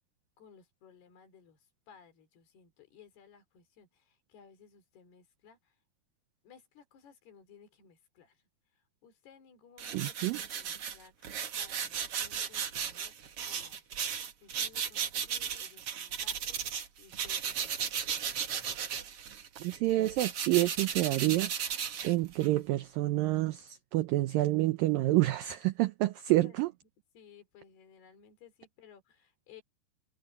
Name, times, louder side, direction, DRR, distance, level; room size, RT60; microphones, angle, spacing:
voice 1, 0.4-5.8 6.4-8.4 8.7-13.2 13.4-17.9 26.3-26.8 27.1-29.6, left 7 dB, 70° left, 5.8 m, -58 dB
sound 1, 9.8-16.9 17.1-22.6, right 7 dB, 50° right, 1.8 m, -35 dB
voice 2, 9.9-10.4 19.6-26.7, right 17 dB, 75° right, 2.1 m, -28 dB
omnidirectional pair, 4.8 m